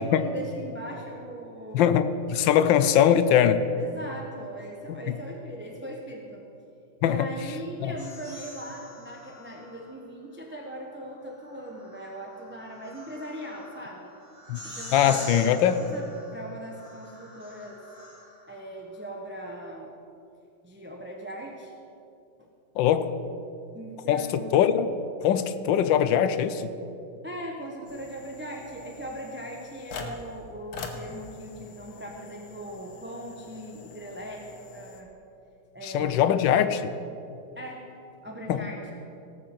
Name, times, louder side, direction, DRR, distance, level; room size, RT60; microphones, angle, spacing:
voice 1, 0.0-1.9 3.8-6.4 7.0-14.1 14.6-17.8 18.5-19.9 20.6-21.7 22.4-22.5 23.7-24.5 27.2-35.1 35.7-36.3 37.5-37.9 38.2-38.8, right 1 dB, 10° right, 0 dB, 0.7 m, -39 dB
voice 2, 1.7-3.6 7.0-7.3 7.8-7.9 14.5-14.6 14.9-15.8 22.8-23.1 24.1-24.9 25.2-26.7 35.8-36.9 38.5-38.6, left 9 dB, 70° left, 12 dB, 1.3 m, -22 dB
sound 1, 8.0-9.9 11.4-18.6, equal, 15° left, 2.9 m, -45 dB
sound 2, 27.9-35.0, left 4 dB, 90° left, 2.0 m, -44 dB
17.5 x 6.6 x 7.4 m, 2.7 s
omnidirectional pair, 2.3 m